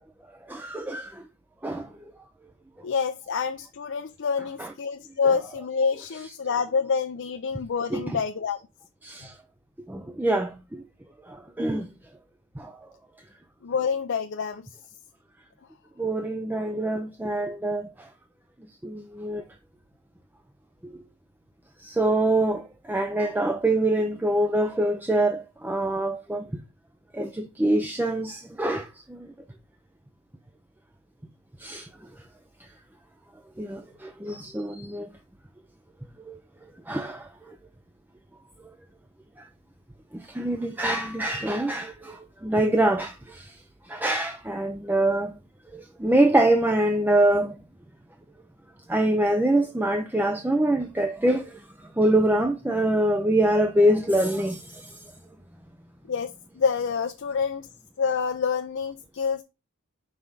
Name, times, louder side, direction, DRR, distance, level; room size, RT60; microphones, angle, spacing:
voice 1, 0.5-1.2 1.6-1.9 4.6-4.7 5.2-5.4 7.9-8.2 9.0-9.3 9.9-10.8 11.3-11.9 12.6-12.8 16.0-18.1 18.8-19.4 20.8-21.0 21.8-26.5 27.1-29.3 31.6-31.9 33.6-35.1 36.3-36.4 36.9-37.5 40.1-43.6 43.9-45.3 45.7-47.6 48.9-51.6 52.0-55.0, right 1 dB, 10° right, 0.4 m, -25 dB
voice 2, 2.8-8.6 13.6-14.6 56.1-57.7 58.0-59.4, left 5 dB, 60° left, 0.5 m, -27 dB
5.6 x 4.8 x 3.9 m
head